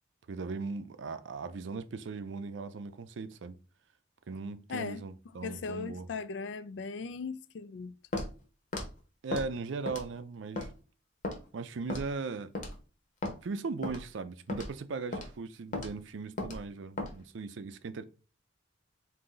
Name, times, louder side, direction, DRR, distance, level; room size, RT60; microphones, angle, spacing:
voice 1, 0.3-3.6 4.3-6.1 9.2-10.7 11.5-12.5 13.4-18.0, right 4 dB, 75° right, 0.4 m, -38 dB
voice 2, 4.7-5.0 5.4-7.9, left 4 dB, 70° left, 0.4 m, -38 dB
Walk footsteps, 8.1-8.3 8.7-8.9 9.3-9.5 9.9-10.2 10.6-10.7 11.2-11.4 11.9-12.1 12.5-12.7 13.2-13.4 13.8-14.0 14.5-14.7 15.1-15.3 15.7-15.9 16.4-16.6 17.0-17.1, left 2 dB, 45° left, 0.9 m, -35 dB
3.8 x 2.7 x 3.8 m
head